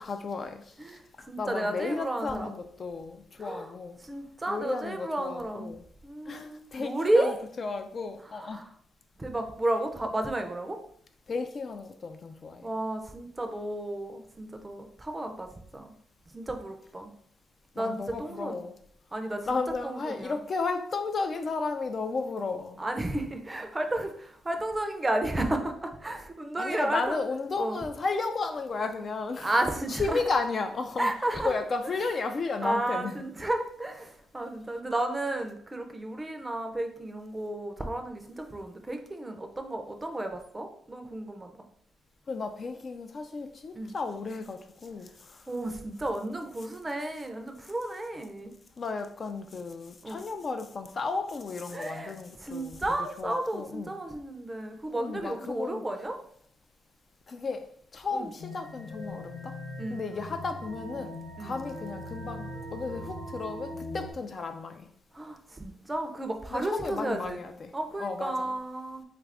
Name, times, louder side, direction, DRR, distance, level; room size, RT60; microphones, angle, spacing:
voice 1, 0.0-4.0 4.5-5.8 6.3-8.6 11.3-12.7 17.8-18.7 19.5-22.8 26.6-29.5 29.9-33.3 42.3-45.5 48.8-52.8 53.2-54.0 55.0-55.8 57.3-59.5 59.9-64.9 66.5-67.7 68.0-68.5, left 4 dB, 40° left, 0.3 m, -34 dB
voice 2, 0.8-2.6 3.4-3.7 4.0-5.7 6.0-7.4 8.3-8.7 9.2-10.8 12.6-15.9 16.3-17.1 17.8-18.6 19.1-20.4 22.8-27.2 27.6-27.8 29.4-30.2 31.0-31.5 32.6-41.5 43.7-43.9 45.5-48.5 50.0-50.2 51.7-56.2 58.1-58.3 59.8-60.0 61.4-61.6 65.1-67.4 67.7-69.0, right 1 dB, 20° right, 0.5 m, -32 dB
sound 1, 58.4-64.1, left 1 dB, 80° left, 0.7 m, -40 dB
3.3 x 2.5 x 3.3 m
cardioid pair, 90°, 0 cm